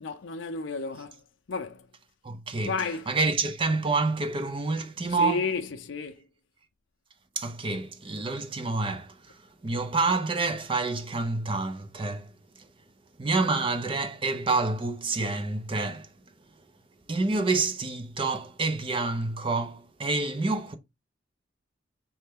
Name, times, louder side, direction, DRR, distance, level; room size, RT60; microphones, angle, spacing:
voice 1, 0.0-1.9 2.6-3.1 5.1-6.3, left 4 dB, 75° left, 0.5 m, -33 dB
voice 2, 2.2-2.7 3.1-5.5 7.4-9.4 9.6-12.3 13.2-16.1 17.1-20.8, right 3 dB, 25° right, 0.4 m, -28 dB
4.2 x 3.3 x 3.6 m
head